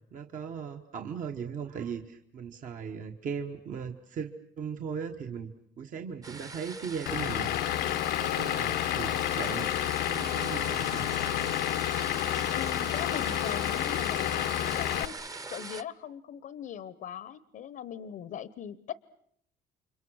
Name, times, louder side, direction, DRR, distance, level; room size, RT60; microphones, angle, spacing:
voice 1, 0.1-7.6 8.2-9.7 10.0-11.0, right 6 dB, 50° right, 4 dB, 1.4 m, -38 dB
sound 1, 6.2-15.8, right 3 dB, 20° right, 1.0 m, -42 dB
Vehicle / Engine, 7.1-15.1, left 13 dB, 85° left, 1.1 m, -30 dB
voice 2, 12.5-14.3 14.7-15.2 15.5-18.9, left 9 dB, 60° left, 17 dB, 0.9 m, -40 dB
30.0 x 25.5 x 6.4 m, 0.71 s
cardioid pair, 110°, 17 cm